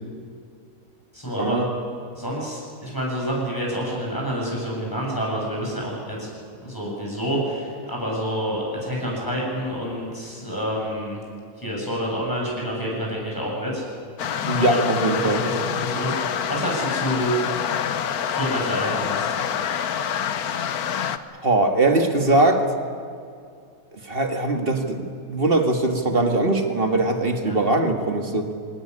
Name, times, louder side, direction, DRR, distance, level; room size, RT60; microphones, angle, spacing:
voice 1, 1.1-1.6 2.1-6.3 6.6-11.2 11.6-13.9 14.5-17.3 18.3-19.4 27.4-27.6, equal, 15° left, -3 dB, 7.8 m, -28 dB
sound 1, 14.2-21.2, left 8 dB, 85° left, 1.5 m, -26 dB
voice 2, 14.5-15.4 21.4-22.6 24.0-28.5, right 2 dB, 40° right, 5 dB, 2.2 m, -21 dB
23.0 x 18.5 x 9.8 m, 2.3 s
omnidirectional pair, 1.5 m